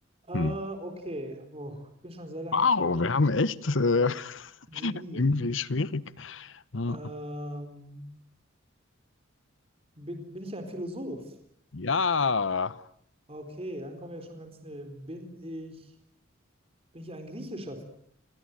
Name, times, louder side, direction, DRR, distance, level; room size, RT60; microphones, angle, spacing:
voice 1, 0.2-3.1 4.7-5.4 6.9-8.1 10.0-11.3 13.3-15.9 16.9-17.8, equal, 30° right, 4.1 m, -39 dB
voice 2, 2.5-7.0 11.7-12.8, left 4 dB, 65° left, 1.0 m, -27 dB
28.5 x 20.0 x 9.2 m
head